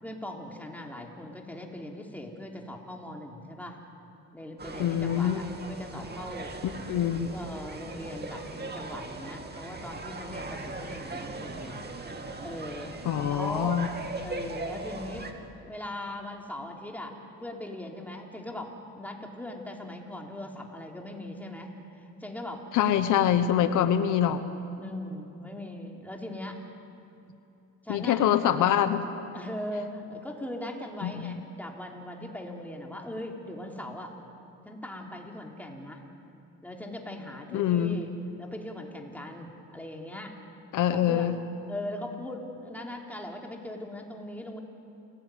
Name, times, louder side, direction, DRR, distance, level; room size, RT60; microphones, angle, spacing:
voice 1, 0.0-3.8 4.3-6.5 7.0-12.1 12.4-12.9 13.3-13.8 14.2-15.3 15.6-21.8 22.2-22.6 24.8-26.6 27.8-28.2 29.3-34.1 34.6-36.0 36.6-38.1 38.4-40.3 40.9-41.3 41.7-44.6, left 1 dB, 5° left, 0 dB, 3.8 m, -39 dB
sound 1, 4.6-15.3, right 3 dB, 35° right, 2.7 m, -39 dB
voice 2, 4.8-5.4 6.9-7.3 13.0-13.9 22.7-24.4 27.9-29.0 31.0-31.4 37.5-38.0 40.7-41.4, left 10 dB, 85° left, 10 dB, 1.2 m, -25 dB
29.0 x 17.5 x 9.4 m, 2.8 s
cardioid pair, 90°, 30 cm